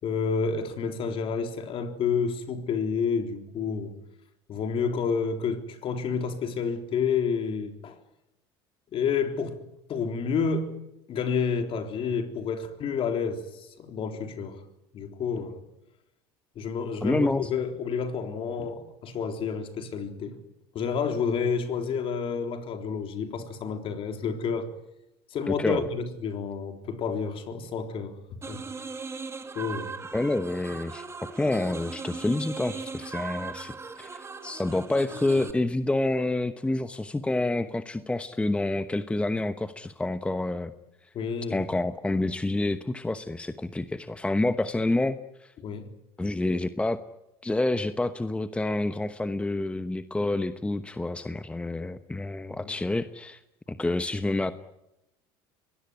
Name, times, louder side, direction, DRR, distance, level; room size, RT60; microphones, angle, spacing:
voice 1, 0.0-4.0 4.5-8.0 8.9-9.6 9.9-10.8 11.1-14.6 14.9-15.6 16.6-20.4 20.7-24.7 25.3-28.2 28.5-28.7 29.5-30.0 41.1-41.6 45.6-45.9 52.6-52.7, left 6 dB, 45° left, 3.7 m, -29 dB
voice 2, 17.0-17.5 25.5-25.9 30.1-31.0 31.4-40.7 41.5-45.5 46.2-47.0 47.4-53.4 53.7-54.5, left 2 dB, 10° left, 1.0 m, -28 dB
sound 1, 28.4-35.5, right 4 dB, 20° right, 2.3 m, -39 dB
24.0 x 20.0 x 9.6 m
supercardioid pair, 95°, 13 cm